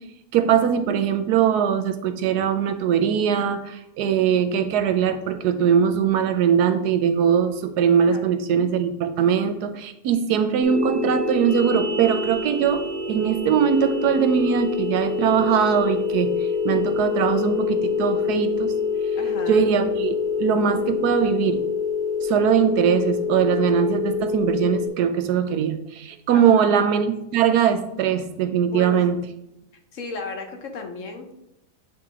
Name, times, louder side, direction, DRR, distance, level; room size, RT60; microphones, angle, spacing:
voice 1, 0.3-12.8 13.1-16.3 16.6-18.7 19.5-21.6 22.2-29.2, right 8 dB, 85° right, 8 dB, 1.2 m, -21 dB
sound 1, 10.6-24.9, left 5 dB, 35° right, 1.4 m, -26 dB
voice 2, 19.2-19.7 26.3-26.7 28.7-29.1 29.9-31.4, left 4 dB, 60° left, 4 dB, 1.0 m, -35 dB
8.9 x 3.0 x 3.6 m, 0.86 s
omnidirectional pair, 1.7 m